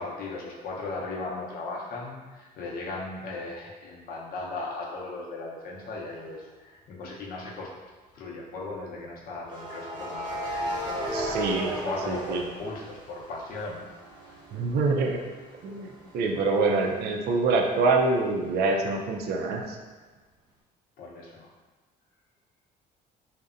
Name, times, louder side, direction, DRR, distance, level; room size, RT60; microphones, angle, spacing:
voice 1, 0.0-7.7 8.1-11.2 11.7-13.8 14.2-14.4 21.0-21.5, left 3 dB, 60° left, -3 dB, 0.6 m, -37 dB
sound 1, 6.1-6.4 9.4-13.3 13.7-17.3, equal, 25° right, 0.9 m, -35 dB
voice 2, 11.1-11.7 12.1-12.4 14.5-15.2 15.6-19.8, right 3 dB, 70° right, 2 dB, 0.4 m, -25 dB
2.7 x 2.1 x 2.4 m, 1.3 s
cardioid pair, 110°, 17 cm